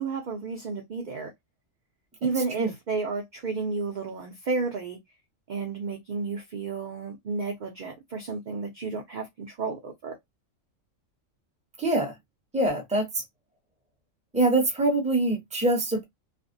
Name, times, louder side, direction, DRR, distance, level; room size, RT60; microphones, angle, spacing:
voice 1, 0.0-1.3 2.2-5.0 5.5-10.2, right 4 dB, 60° right, 0.5 m, -32 dB
voice 2, 11.8-12.1 12.5-13.2 14.3-16.0, right 2 dB, 10° right, 0.6 m, -24 dB
2.5 x 2.0 x 2.6 m
omnidirectional pair, 1.4 m